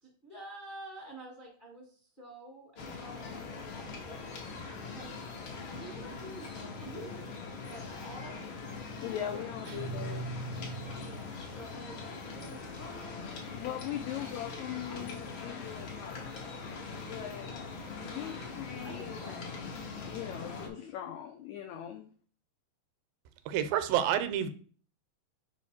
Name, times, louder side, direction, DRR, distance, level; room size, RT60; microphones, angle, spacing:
voice 1, 0.0-3.2 3.5-4.2 4.8-5.1 5.7-7.3 7.7-8.5 9.1-9.5 11.0-15.0 17.8-20.2, right 1 dB, 30° left, 0.8 m, -50 dB
sound 1, 2.8-20.7, left 4 dB, 60° left, 1.3 m, -42 dB
voice 2, 9.0-10.3 13.5-16.8 17.1-17.5 18.0-19.3 19.9-22.1, left 11 dB, 85° left, 1.6 m, -40 dB
sound 2, 9.6-11.7, right 2 dB, 65° right, 1.3 m, -40 dB
voice 3, 23.5-24.5, right 10 dB, 85° right, 2.3 m, -28 dB
5.1 x 4.9 x 4.2 m
omnidirectional pair, 3.9 m